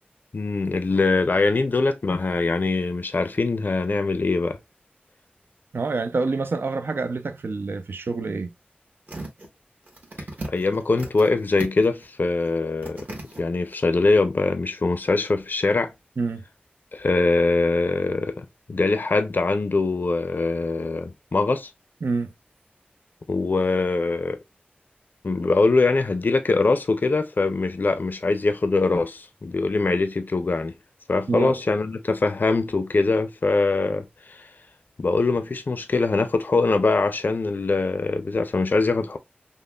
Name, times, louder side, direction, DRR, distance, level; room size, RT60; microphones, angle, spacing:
voice 1, 0.3-4.6 10.5-13.1 13.4-15.9 16.9-21.7 23.3-24.4 25.2-30.7 31.1-34.5 35.0-39.2, left 3 dB, 60° left, 0.5 m, -23 dB
voice 2, 5.7-8.5 16.2-16.4 22.0-22.3 31.3-31.6, right 3 dB, 80° right, 0.4 m, -27 dB
sound 1, 9.1-9.5 9.9-11.3 11.6-12.0 12.4-12.5 12.8-13.4 13.9-14.0, right 2 dB, 50° right, 1.2 m, -36 dB
5.3 x 2.1 x 2.3 m
wide cardioid pair, 70°, 4 cm